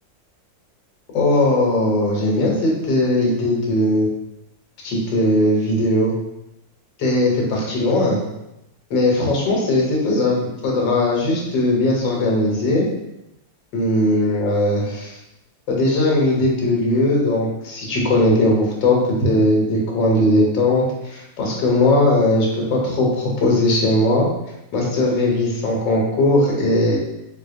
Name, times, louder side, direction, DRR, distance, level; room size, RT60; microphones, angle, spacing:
voice 1, 1.1-4.1 4.8-6.1 7.0-8.2 8.9-12.9 13.7-15.2 15.7-24.3 24.7-27.0, left 1 dB, 75° left, -2 dB, 1.5 m, -19 dB
3.9 x 2.8 x 2.5 m, 0.89 s
omnidirectional pair, 2.0 m